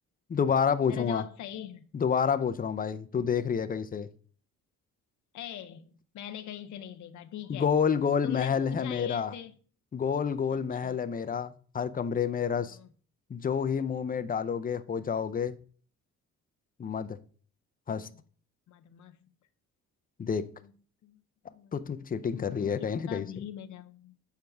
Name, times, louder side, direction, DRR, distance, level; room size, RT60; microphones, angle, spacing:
voice 1, 0.3-1.2 1.9-4.1 7.5-9.3 9.9-12.8 13.3-15.6 16.8-17.2 17.9-18.1 20.2-20.4 21.7-23.3, left 7 dB, 30° left, 0.6 m, -29 dB
voice 2, 0.9-1.8 5.3-7.7 8.2-9.6 10.5-11.0 12.6-12.9 18.7-19.2 20.6-20.7 21.0-21.2 21.5-22.0 22.3-24.1, left 10 dB, 70° left, 0.7 m, -42 dB
7.1 x 4.6 x 3.4 m
cardioid pair, 90°, 30 cm